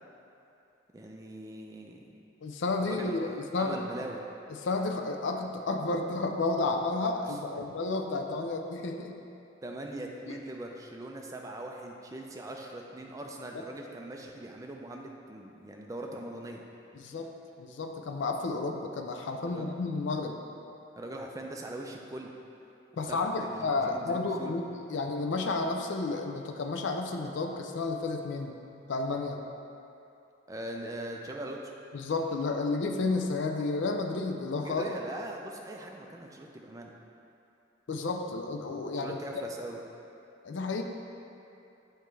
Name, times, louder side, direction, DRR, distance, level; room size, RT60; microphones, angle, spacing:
voice 1, 0.9-2.1 2.8-4.2 7.3-7.7 9.6-16.6 19.4-19.7 21.0-22.3 23.0-24.5 30.5-31.7 34.6-36.9 38.9-39.8, right 1 dB, 15° right, 1 dB, 0.4 m, -41 dB
voice 2, 2.4-3.9 4.6-9.1 10.3-10.4 13.5-13.6 17.0-17.3 17.6-20.4 23.0-24.6 24.9-28.5 28.9-29.4 31.9-34.9 37.9-39.2 40.4-40.8, left 3 dB, 65° left, 4 dB, 0.4 m, -31 dB
7.1 x 4.4 x 3.2 m, 2.7 s
head